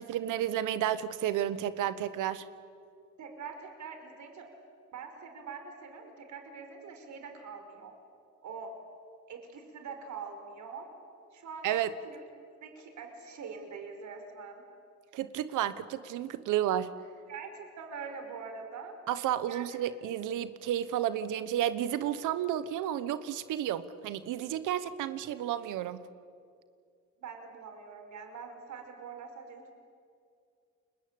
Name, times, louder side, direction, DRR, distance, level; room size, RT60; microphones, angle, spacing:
voice 1, 0.0-2.4 11.6-11.9 15.1-16.9 19.1-26.0, right 11 dB, 90° right, 14 dB, 1.2 m, -31 dB
voice 2, 3.2-4.5 4.9-7.9 8.4-8.7 9.3-10.9 11.3-12.2 12.6-14.6 17.3-18.9 19.4-19.8 27.2-29.8, right 5 dB, 70° right, 5 dB, 4.9 m, -44 dB
29.5 x 22.0 x 8.7 m, 2.3 s
cardioid pair, 90°, 30 cm